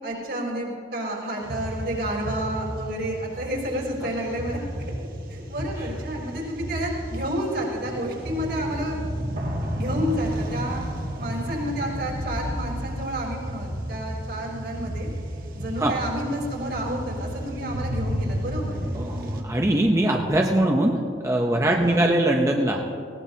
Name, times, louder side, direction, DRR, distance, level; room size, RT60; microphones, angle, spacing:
voice 1, 0.0-4.7 5.3-9.0 9.7-10.9 11.2-15.1 15.6-18.8 21.6-22.1, right 1 dB, 70° right, -3 dB, 3.7 m, -30 dB
sound 1, 1.4-19.4, equal, 50° right, 1.4 m, -32 dB
voice 2, 18.9-22.8, right 1 dB, 15° right, 1 dB, 0.7 m, -22 dB
19.0 x 17.0 x 2.8 m, 2.7 s
head